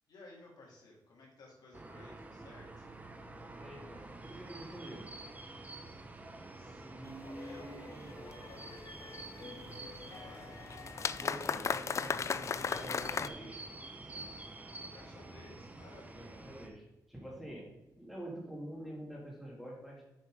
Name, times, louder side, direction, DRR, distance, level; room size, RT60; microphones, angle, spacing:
voice 1, 0.1-2.9 5.8-6.9 7.2-10.7 14.7-16.4, left 2 dB, 70° left, -3 dB, 3.0 m, -56 dB
sound 1, 1.7-16.7, right 2 dB, 20° right, 0.9 m, -48 dB
voice 2, 3.6-5.1 11.2-13.6 14.1-14.3 16.1-20.1, right 1 dB, ahead, -3 dB, 2.7 m, -47 dB
sound 2, 7.1-13.3, left 6 dB, 45° left, 0.4 m, -38 dB
7.7 x 5.4 x 5.0 m, 1.0 s
cardioid pair, 110°, 7 cm